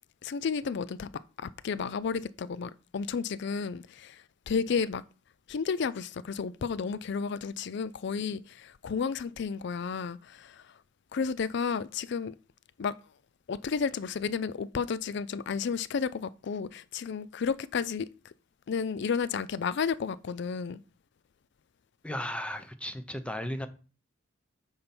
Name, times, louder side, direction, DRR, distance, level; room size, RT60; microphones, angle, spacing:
voice 1, 0.2-1.1 1.4-5.0 5.5-10.6 11.1-12.3 12.8-12.9 13.5-18.3 18.7-20.8, left 5 dB, 60° left, 0.4 m, -32 dB
voice 2, 22.0-23.7, left 1 dB, 5° left, 0.8 m, -35 dB
8.7 x 5.6 x 4.3 m
head